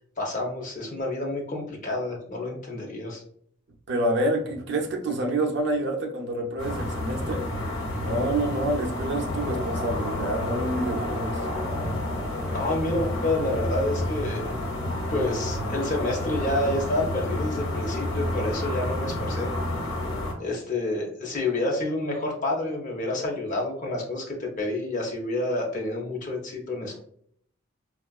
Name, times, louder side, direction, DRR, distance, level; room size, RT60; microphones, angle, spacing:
voice 1, 0.2-3.2 12.5-14.5 15.1-19.5 20.4-27.0, left 2 dB, 40° left, 0.8 m, -29 dB
voice 2, 3.9-7.5 8.0-11.4, right 1 dB, 55° right, 0.5 m, -27 dB
sound 1, 6.6-20.3, left 1 dB, 80° left, 0.8 m, -30 dB
4.6 x 2.3 x 2.3 m
head